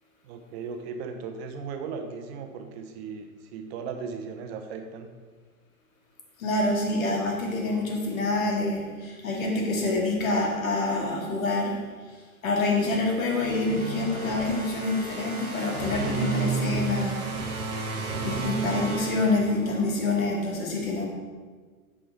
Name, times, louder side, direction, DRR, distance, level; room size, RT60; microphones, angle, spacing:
voice 1, 0.2-5.1, right 5 dB, 45° right, 5 dB, 1.2 m, -37 dB
voice 2, 6.4-11.8 12.4-17.2 18.2-21.1, left 2 dB, 70° left, -1 dB, 2.3 m, -26 dB
sound 1, 13.2-19.9, right 3 dB, 85° right, 1.5 m, -32 dB
6.6 x 5.4 x 6.0 m, 1.5 s
hypercardioid pair, 110°, 42 cm